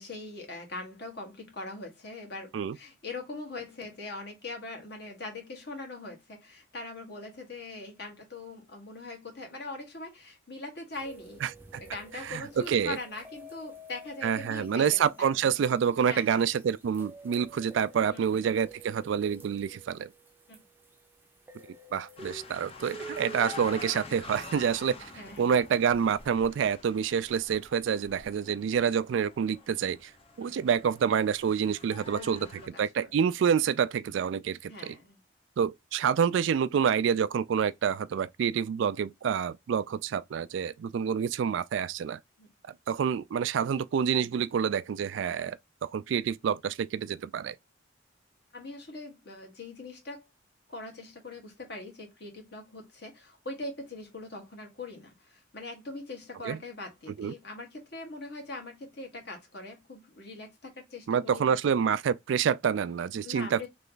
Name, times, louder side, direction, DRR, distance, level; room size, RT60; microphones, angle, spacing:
voice 1, 0.0-11.4 11.9-15.4 16.0-16.4 18.1-18.4 20.5-20.6 25.2-25.5 30.4-30.7 32.1-33.1 34.7-35.2 42.4-42.5 48.5-50.3 50.7-61.5 63.2-63.7, left 2 dB, 55° left, 1.6 m, -42 dB
sound 1, 10.9-26.3, right 2 dB, 10° right, 0.6 m, -50 dB
voice 2, 12.3-13.0 14.2-20.1 21.9-25.1 25.4-30.1 30.4-32.5 32.8-34.9 35.6-42.2 42.9-47.6 56.4-56.6 57.2-57.3 61.1-63.7, right 7 dB, 70° right, 0.3 m, -27 dB
sound 2, 22.2-32.7, left 3 dB, 30° left, 0.7 m, -46 dB
3.3 x 3.0 x 3.9 m
head